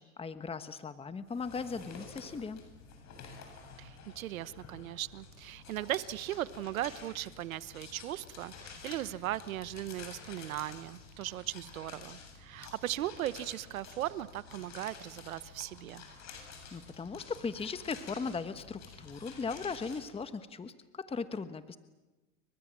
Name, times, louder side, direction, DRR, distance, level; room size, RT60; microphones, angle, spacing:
voice 1, 0.0-2.6 16.7-21.8, left 4 dB, 15° left, 11 dB, 1.2 m, -38 dB
sound 1, 1.3-20.0, left 5 dB, 40° left, 7.9 m, -50 dB
voice 2, 3.8-16.0, right 14 dB, 85° right, 16 dB, 1.1 m, -38 dB
30.0 x 23.5 x 7.5 m, 1.1 s
hypercardioid pair, 105°, 40 cm